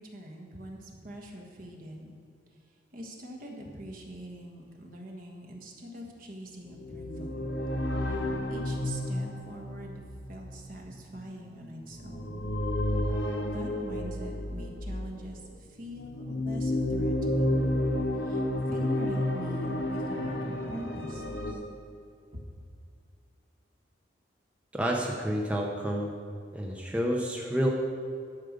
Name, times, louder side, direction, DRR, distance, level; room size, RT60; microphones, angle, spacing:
voice 1, 0.0-2.1 2.9-7.5 8.1-8.2 8.5-12.5 13.2-17.6 18.2-21.2 22.3-22.4, equal, 50° right, 0 dB, 1.5 m, -43 dB
sound 1, 6.7-15.2 15.8-21.5, left 1 dB, 75° left, 1.2 m, -31 dB
voice 2, 24.7-26.2 26.5-27.7, equal, 5° right, -1 dB, 0.7 m, -29 dB
11.5 x 6.6 x 5.1 m, 2.4 s
head